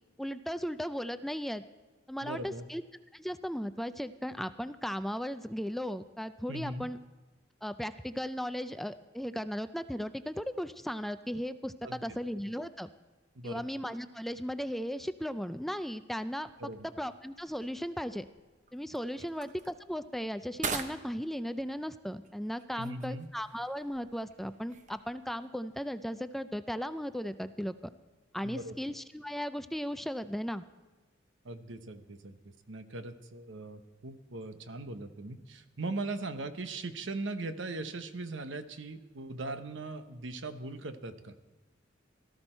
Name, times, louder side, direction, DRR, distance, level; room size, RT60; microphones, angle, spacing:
voice 1, 0.2-1.6 2.1-2.8 3.1-7.0 7.6-12.9 13.4-16.5 16.8-18.3 18.7-27.7 28.3-30.6, equal, ahead, 11 dB, 0.4 m, -36 dB
voice 2, 2.2-2.7 6.5-6.9 11.8-12.0 13.3-13.6 16.6-16.9 22.8-23.3 28.4-28.8 31.4-41.4, right 2 dB, 80° right, 9 dB, 1.0 m, -40 dB
sound 1, 16.3-25.5, right 5 dB, 40° right, 0.9 m, -45 dB
17.5 x 13.5 x 4.4 m, 1.2 s
head